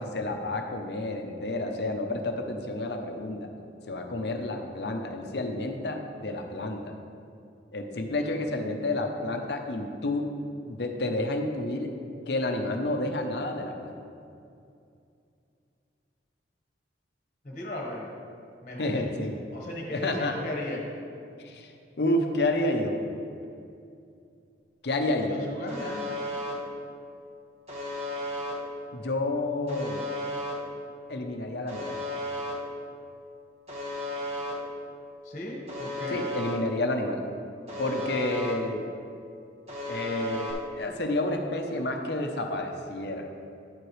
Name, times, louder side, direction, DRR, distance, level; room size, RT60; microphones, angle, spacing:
voice 1, 0.0-3.5 3.9-6.9 7.7-10.3 10.7-11.9 12.3-14.0 18.8-19.3 19.9-20.3 21.4-23.0 24.8-25.4 28.9-30.0 31.1-32.0 36.1-37.2 37.8-38.8 39.9-43.3, left 2 dB, 60° left, 4 dB, 0.7 m, -30 dB
voice 2, 17.4-18.1 18.6-19.0 19.5-20.8 25.3-26.1 35.2-36.2, left 1 dB, 40° left, -1 dB, 1.2 m, -36 dB
Alarm, 25.7-26.5 27.7-28.5 29.7-30.5 31.7-32.5 33.7-34.5 35.7-36.5 37.7-38.5 39.7-40.5, left 1 dB, 35° right, 1.4 m, -34 dB
9.5 x 7.9 x 3.2 m, 2.5 s
head